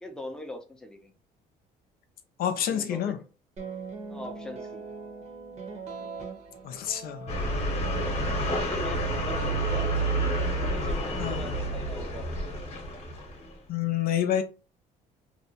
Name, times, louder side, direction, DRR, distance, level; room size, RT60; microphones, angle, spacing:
voice 1, 0.0-1.1 2.7-3.2 4.1-4.9 8.2-9.9 10.5-12.3, left 1 dB, 5° left, 0.5 m, -41 dB
voice 2, 2.4-3.2 6.6-7.4 11.2-11.5 13.7-14.4, left 10 dB, 60° left, 0.4 m, -28 dB
sound 1, 3.6-10.7, right 4 dB, 40° right, 0.8 m, -41 dB
sound 2, 7.3-13.6, right 1 dB, 40° left, 0.9 m, -29 dB
2.7 x 2.1 x 2.7 m
cardioid pair, 110°, 17 cm